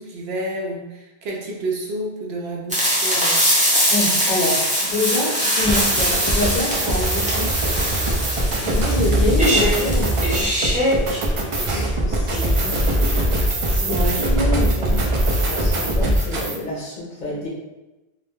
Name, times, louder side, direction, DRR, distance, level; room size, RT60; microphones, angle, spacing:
voice 1, 0.0-3.4 8.6-9.0 13.9-14.3, right 1 dB, 75° right, -1 dB, 0.8 m, -29 dB
sound 1, 2.7-11.2, equal, 10° right, 0.5 m, -22 dB
voice 2, 3.9-8.2 8.6-10.5 11.5-12.9 13.7-17.5, left 1 dB, 50° left, -5 dB, 0.8 m, -27 dB
sound 2, 5.6-16.6, right 1 dB, 60° right, 0.3 m, -21 dB
2.3 x 2.1 x 3.1 m, 1.0 s
omnidirectional pair, 1.1 m